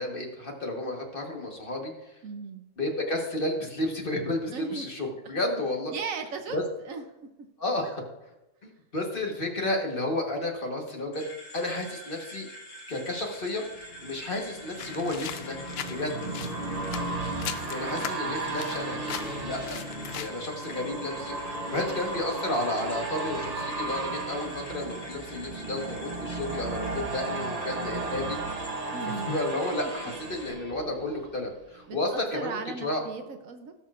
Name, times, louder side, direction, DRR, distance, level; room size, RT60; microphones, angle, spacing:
voice 1, 0.0-1.9 2.8-5.9 6.5-6.6 7.6-8.0 8.6-11.3 11.5-12.5 12.9-15.6 15.9-16.2 17.7-19.8 20.1-28.4 29.3-33.0, left 1 dB, 35° left, 1 dB, 1.4 m, -32 dB
voice 2, 2.2-2.6 4.5-4.9 5.9-7.0 16.2-17.0 17.9-18.1 28.9-29.4 31.9-33.7, right 5 dB, 65° right, 6 dB, 1.1 m, -37 dB
sound 1, 11.1-30.5, equal, 70° left, 2.0 m, -46 dB
sound 2, 13.8-31.6 32.0-32.1, right 3 dB, 40° right, 0.5 m, -35 dB
sound 3, 14.8-20.3, left 10 dB, 85° left, 0.5 m, -39 dB
18.0 x 6.4 x 2.5 m, 0.96 s
omnidirectional pair, 1.6 m